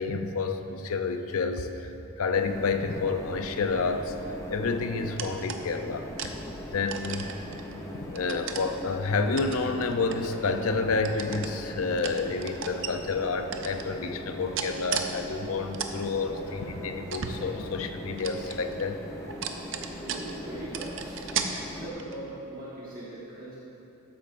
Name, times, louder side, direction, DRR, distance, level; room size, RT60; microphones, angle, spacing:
voice 1, 0.0-1.9 2.2-4.1 4.5-6.4 6.7-7.4 8.0-19.0, left 4 dB, 75° left, 7 dB, 0.5 m, -29 dB
sound 1, 2.3-21.9, equal, 15° left, 0.8 m, -41 dB
sound 2, 5.2-5.7 6.2-6.4 6.9-7.7 8.2-8.7 9.4-10.7 11.0-11.5 12.0-12.9 13.5-13.9 14.5-15.1 15.5-15.9 16.3-16.4 17.1-17.9 18.2-18.8 19.2-20.4 20.7-21.5 22.0-22.3, right 7 dB, 55° right, 0.5 m, -35 dB
sound 3, 9.2-14.3 15.2-20.7, left 1 dB, 90° left, 1.0 m, -50 dB
voice 2, 19.8-21.2 21.7-23.6, right 1 dB, 40° right, -8 dB, 1.2 m, -40 dB
12.5 x 8.4 x 2.5 m, 2.9 s
head